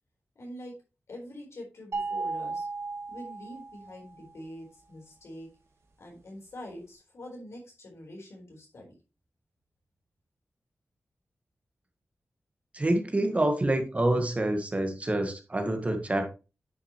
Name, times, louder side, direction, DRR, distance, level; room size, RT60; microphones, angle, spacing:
voice 1, 0.4-0.7 1.1-2.7 3.1-5.5 6.0-8.9, left 1 dB, 80° left, -1 dB, 4.0 m, -45 dB
sound 1, 1.9-4.2, right 3 dB, 70° right, 1.8 m, -35 dB
voice 2, 12.7-16.3, right 1 dB, 30° right, 5 dB, 1.6 m, -27 dB
9.5 x 6.4 x 3.0 m, 0.31 s
wide cardioid pair, 80°, 5 cm